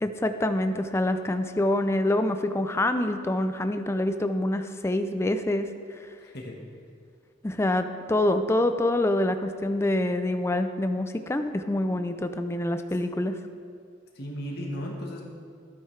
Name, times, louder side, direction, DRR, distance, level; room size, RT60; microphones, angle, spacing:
voice 1, 0.0-5.7 7.4-13.4, left 1 dB, 15° left, 8 dB, 0.4 m, -26 dB
voice 2, 6.2-6.6 14.1-15.2, equal, 55° left, -1 dB, 1.4 m, -35 dB
13.5 x 9.2 x 3.3 m, 2.2 s
head